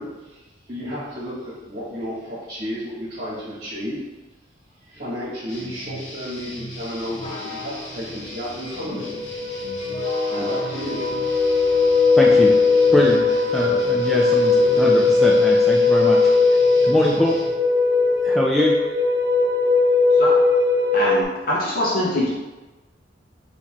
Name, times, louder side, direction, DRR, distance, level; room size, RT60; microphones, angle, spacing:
voice 1, 0.0-4.0 4.8-9.2 10.3-11.0, equal, 45° right, -7 dB, 1.3 m, -32 dB
sound 1, 5.5-17.5, equal, 75° left, 1.1 m, -38 dB
sound 2, 6.4-15.3, left 4 dB, 35° left, 0.9 m, -36 dB
sound 3, 8.3-8.4 8.7-21.2, left 3 dB, 65° right, 0.6 m, -18 dB
voice 2, 12.1-12.5 12.9-13.2 13.5-16.2 16.8-17.4 18.2-18.7, left 1 dB, ahead, -4 dB, 0.4 m, -22 dB
voice 3, 20.9-22.3, left 1 dB, 50° left, -6 dB, 1.2 m, -23 dB
4.1 x 3.0 x 4.2 m, 1.1 s
head